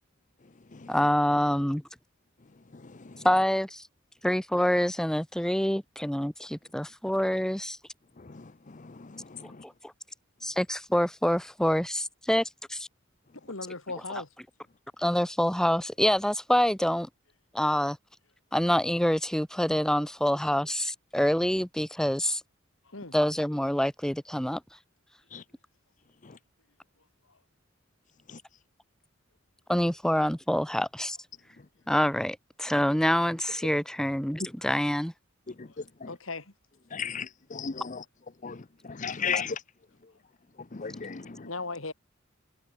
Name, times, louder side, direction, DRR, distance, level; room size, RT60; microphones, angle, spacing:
voice 1, 0.9-1.8 3.2-3.8 4.2-7.8 9.6-9.7 10.4-12.9 15.0-17.1 17.5-18.0 18.5-22.4 23.1-24.6 29.7-31.2 31.9-35.1, equal, 5° left, 0.8 m, -26 dB
voice 2, 2.7-3.3 8.2-9.6 25.3-25.4 26.2-26.4 28.3-28.4 35.6-36.1 36.9-38.0 38.4-39.6 40.7-41.5, left 6 dB, 40° left, 0.7 m, -36 dB
voice 3, 13.4-14.3 22.9-23.2 36.1-36.4 41.4-41.9, left 3 dB, 85° left, 3.8 m, -37 dB
head